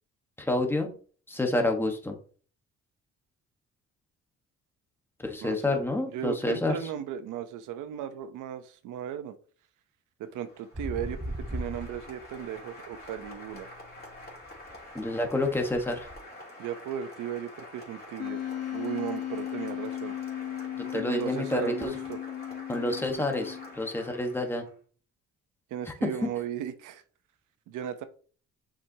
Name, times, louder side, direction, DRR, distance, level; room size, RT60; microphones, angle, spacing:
voice 1, 0.4-1.0 1.3-2.1 5.2-6.7 14.9-16.1 20.9-21.9 22.7-24.6 26.0-26.3, left 2 dB, 5° left, 3 dB, 1.3 m, -28 dB
voice 2, 5.4-9.3 10.2-13.7 16.6-18.4 18.7-20.2 20.9-22.2 25.7-27.0 27.7-28.0, right 9 dB, 85° right, 10 dB, 0.8 m, -36 dB
Applause, 10.3-24.7, left 1 dB, 30° left, 2.9 m, -47 dB
sound 1, 10.7-12.6 12.9-16.1, equal, 15° right, 1.4 m, -40 dB
Wind instrument woodwind instrument, 18.2-23.9, left 11 dB, 55° left, 1.2 m, -36 dB
7.3 x 5.0 x 2.8 m, 0.42 s
cardioid pair, 90°, 30 cm